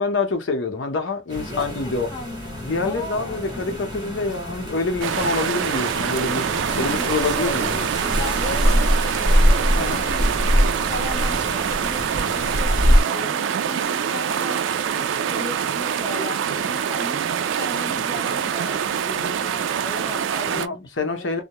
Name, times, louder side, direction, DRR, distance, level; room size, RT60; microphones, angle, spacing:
voice 1, 0.0-2.1 2.6-6.5 6.8-7.7 9.7-10.0 20.5-21.4, left 3 dB, 85° left, 0.7 m, -26 dB
sound 1, 1.3-13.0, equal, 25° right, 0.9 m, -24 dB
voice 2, 1.4-3.6 6.7-21.3, left 2 dB, 20° left, 0.4 m, -37 dB
sound 2, 5.0-20.7, right 8 dB, 90° right, 0.3 m, -25 dB
2.2 x 2.1 x 2.9 m
head